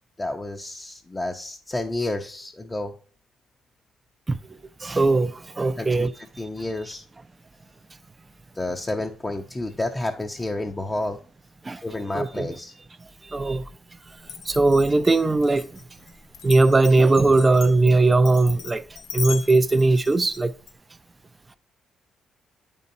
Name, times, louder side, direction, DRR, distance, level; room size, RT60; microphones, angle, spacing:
voice 1, 0.2-2.9 5.8-7.1 8.6-11.2 11.8-12.7, left 2 dB, 20° left, 0.6 m, -30 dB
voice 2, 4.8-5.3 5.6-6.1 11.7-11.8 12.1-12.5 13.3-13.6 14.5-15.7 16.4-18.8 19.1-20.5, right 3 dB, 25° right, 0.4 m, -19 dB
Glass, 14.2-20.7, left 7 dB, 80° left, 1.0 m, -37 dB
8.4 x 5.3 x 2.6 m
cardioid pair, 90°, 0 cm